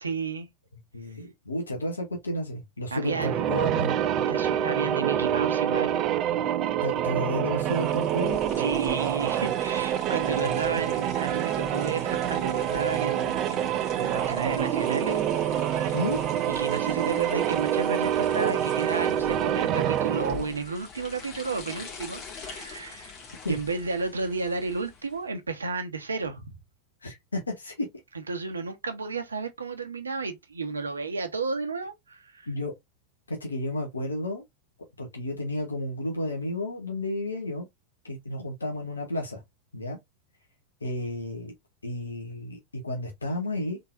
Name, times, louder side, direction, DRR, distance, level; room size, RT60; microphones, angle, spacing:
voice 1, 0.0-0.5 2.9-3.5 4.1-5.9 8.6-15.9 16.5-23.1 23.5-26.6 28.3-32.5, right 4 dB, 75° right, 1.0 m, -32 dB
voice 2, 0.9-4.0 6.8-8.4 10.4-10.9 15.9-16.2 23.4-23.6 27.0-27.9 32.5-32.7 33.3-34.4 35.0-37.7 38.0-39.4 39.7-40.0 40.8-41.5 41.8-43.8, left 1 dB, 75° left, 1.3 m, -32 dB
sound 1, 3.0-20.5, right 10 dB, 35° right, 0.4 m, -26 dB
sound 2, 7.6-25.3, left 6 dB, 40° left, 1.9 m, -45 dB
3.9 x 3.8 x 2.5 m
figure-of-eight pair, 90°, 0 cm